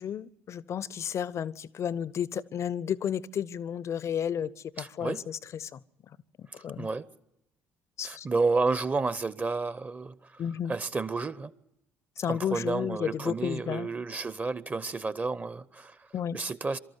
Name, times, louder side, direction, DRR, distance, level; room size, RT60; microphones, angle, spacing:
voice 1, 0.0-4.5 4.8-5.8 6.4-6.9 8.0-8.3 10.4-10.8 12.2-13.9 16.1-16.4, left 8 dB, 45° left, 0.7 m, -32 dB
voice 2, 4.8-5.3 6.8-7.1 8.0-10.4 10.7-11.5 12.3-16.1 16.3-16.8, right 3 dB, 25° right, 0.9 m, -31 dB
24.5 x 13.5 x 9.5 m
figure-of-eight pair, 50°, 7 cm